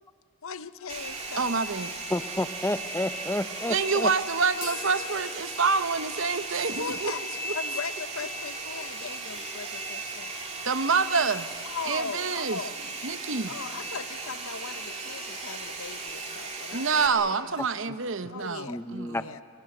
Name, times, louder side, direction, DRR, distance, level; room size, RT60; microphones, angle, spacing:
voice 1, 0.4-1.6 6.8-10.5 11.6-12.8 13.5-17.5 18.3-19.4, left 5 dB, 75° left, 12 dB, 0.8 m, -39 dB
Domestic sounds home sounds, 0.9-17.1, right 2 dB, 30° right, 2.9 m, -36 dB
sound 1, 1.1-18.2, right 1 dB, 10° right, 5.9 m, -56 dB
voice 2, 1.4-1.9 3.7-7.1 7.4-7.5 10.6-11.5 11.8-12.6 13.0-13.5 16.7-19.3, right 5 dB, 60° right, 12 dB, 0.9 m, -27 dB
voice 3, 2.1-4.1 17.9-18.0 18.7-19.2, left 1 dB, 10° left, 11 dB, 0.6 m, -30 dB
sound 2, 4.5-12.3, left 6 dB, 40° left, 1.1 m, -49 dB
25.5 x 23.5 x 7.8 m, 2.2 s
head